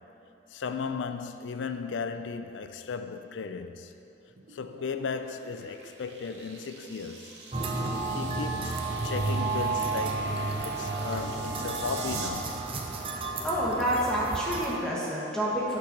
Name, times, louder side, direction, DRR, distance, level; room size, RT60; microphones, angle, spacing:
voice 1, 0.5-3.9 4.5-7.5 8.1-12.6, left 5 dB, 85° left, 0.4 m, -36 dB
sound 1, 4.3-12.3, right 3 dB, 65° right, 0.8 m, -42 dB
sound 2, 7.5-14.8, right 3 dB, 30° right, 0.5 m, -32 dB
voice 2, 13.4-15.8, equal, 5° left, 1.0 m, -28 dB
8.7 x 4.1 x 5.8 m
head